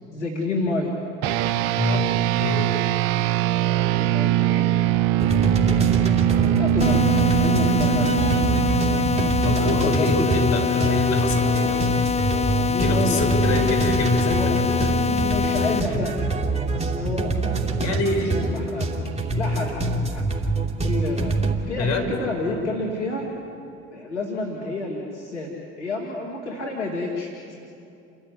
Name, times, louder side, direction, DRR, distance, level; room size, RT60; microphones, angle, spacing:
voice 1, 0.1-0.9 3.7-4.8 5.2-6.2 6.6-8.1 9.5-10.3 10.6-11.1 12.5-13.9 14.2-18.9 19.4-19.7 20.1-20.3 20.8-21.3 21.7-23.3 23.9-25.5 25.8-27.6, left 2 dB, 80° left, -2 dB, 2.6 m, -30 dB
sound 1, 1.2-10.9, right 13 dB, 65° right, 0.7 m, -22 dB
voice 2, 1.8-2.1 2.4-2.7 9.4-11.8 12.6-14.9 17.8-18.4 21.8-22.1, left 2 dB, 50° left, 4 dB, 4.5 m, -25 dB
sound 2, 5.2-21.5, right 2 dB, 20° right, 2.8 m, -25 dB
sound 3, 6.8-15.8, left 6 dB, 20° left, 0.6 m, -24 dB
29.5 x 13.5 x 9.8 m, 2.5 s
figure-of-eight pair, 55°, 34 cm